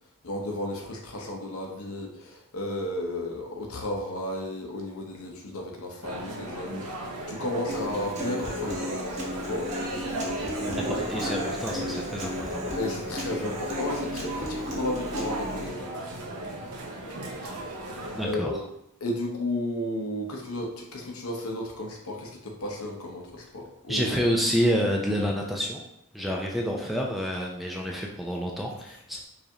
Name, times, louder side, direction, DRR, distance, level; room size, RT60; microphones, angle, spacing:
voice 1, 0.2-9.7 10.4-11.0 12.7-15.9 17.4-17.8 18.2-18.6 19.0-24.2, left 1 dB, 75° left, 1 dB, 0.8 m, -33 dB
sound 1, 6.0-18.3, right 1 dB, 90° right, 0.7 m, -36 dB
Human voice / Acoustic guitar, 7.7-15.7, equal, 30° right, 0.8 m, -34 dB
voice 2, 10.8-12.6 18.1-18.5 23.9-25.8 26.1-29.3, equal, ahead, -1 dB, 0.4 m, -28 dB
4.9 x 2.5 x 2.8 m, 0.79 s
head